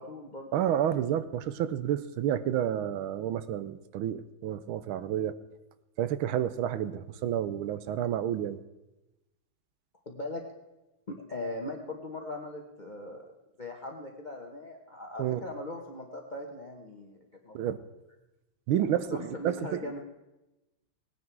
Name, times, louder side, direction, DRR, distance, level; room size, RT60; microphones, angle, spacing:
voice 1, 0.0-0.9 10.1-10.4 11.1-17.7 19.1-20.0, left 2 dB, 35° left, 1 dB, 0.8 m, -40 dB
voice 2, 0.5-5.3 6.0-8.6 15.2-15.4 17.5-17.8 18.7-19.8, right 10 dB, 80° right, 13 dB, 1.4 m, -30 dB
18.0 x 9.7 x 4.6 m, 1.0 s
omnidirectional pair, 2.3 m